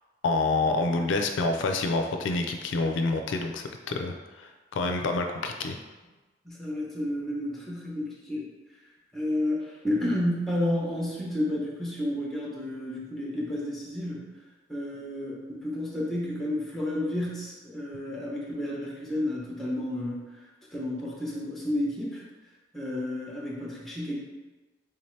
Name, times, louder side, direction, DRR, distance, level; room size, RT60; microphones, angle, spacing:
voice 1, 0.2-5.8, left 3 dB, 85° left, 5 dB, 0.4 m, -27 dB
voice 2, 6.4-8.5 9.1-14.3 14.7-20.4 20.7-22.2 22.7-24.1, left 1 dB, ahead, -5 dB, 0.7 m, -31 dB
3.7 x 2.7 x 3.1 m, 1.2 s
head